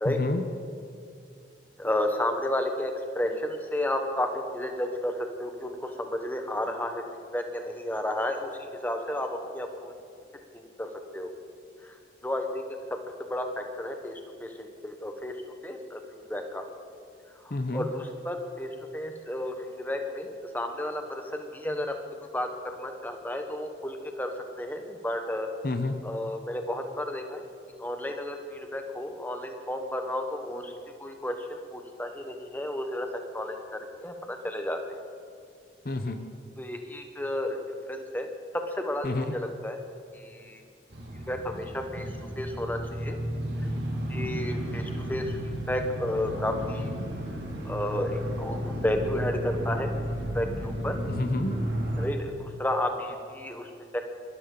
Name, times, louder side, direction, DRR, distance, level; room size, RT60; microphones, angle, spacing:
voice 1, 0.0-0.4 17.5-17.9 25.6-26.0 35.8-36.2 39.0-39.3 51.2-51.6, left 2 dB, 50° left, 7 dB, 0.8 m, -29 dB
voice 2, 1.8-7.0 7.3-9.9 10.8-11.3 11.8-12.0 12.2-12.6 13.3-14.5 14.8-15.3 15.6-16.0 16.3-16.6 17.7-21.9 22.3-22.5 22.8-25.5 26.0-27.5 27.8-30.7 31.0-33.1 33.3-34.8 36.6-37.6 37.9-38.3 38.7-39.8 40.1-40.6 41.1-42.1 42.4-43.2 44.1-45.4 45.7-46.9 47.6-49.9 50.3-50.9 52.0-54.0, left 1 dB, 10° left, 4 dB, 1.0 m, -32 dB
sound 1, 40.9-52.1, equal, 90° right, 2.4 m, -33 dB
22.5 x 12.5 x 3.9 m, 2.4 s
head